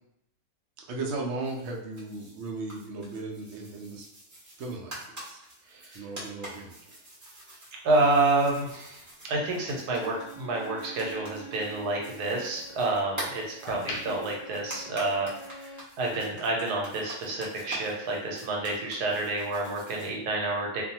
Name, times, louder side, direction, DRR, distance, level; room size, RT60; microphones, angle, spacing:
voice 1, 0.9-4.1 4.6-5.4 5.9-6.8, right 3 dB, 65° right, -1 dB, 0.7 m, -36 dB
sound 1, 1.4-20.1, right 1 dB, 30° right, 0.3 m, -46 dB
voice 2, 7.8-9.0 9.3-15.3 15.6-20.8, right 2 dB, 80° right, -1 dB, 1.2 m, -29 dB
sound 2, 8.8-11.2 11.6-13.0 13.4-15.6 15.9-16.1, left 1 dB, 75° left, 1.1 m, -43 dB
Bowed string instrument, 9.8-15.9, right 3 dB, 50° left, 0.7 m, -47 dB
2.6 x 2.2 x 2.7 m, 0.78 s
omnidirectional pair, 1.7 m